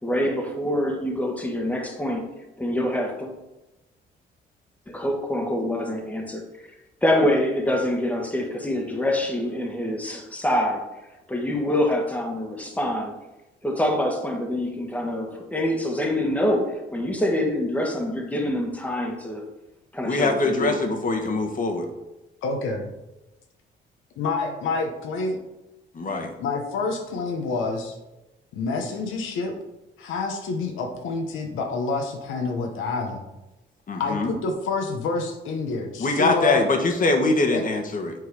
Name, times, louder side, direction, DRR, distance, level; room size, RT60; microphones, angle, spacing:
voice 1, 0.0-2.3 2.6-3.3 4.9-6.4 7.0-10.9 11.3-13.2 13.6-19.4 19.9-20.8, left 1 dB, 5° left, 2 dB, 1.4 m, -25 dB
voice 2, 20.0-21.9 25.9-26.3 33.9-34.3 36.0-38.1, left 2 dB, 45° left, 4 dB, 1.3 m, -23 dB
voice 3, 22.4-22.9 24.2-25.4 26.4-28.0 28.5-29.5 30.0-33.2 34.0-36.7 37.5-37.7, left 3 dB, 85° left, 4 dB, 1.0 m, -28 dB
7.6 x 3.8 x 4.8 m, 1.0 s
cardioid pair, 90°, 20 cm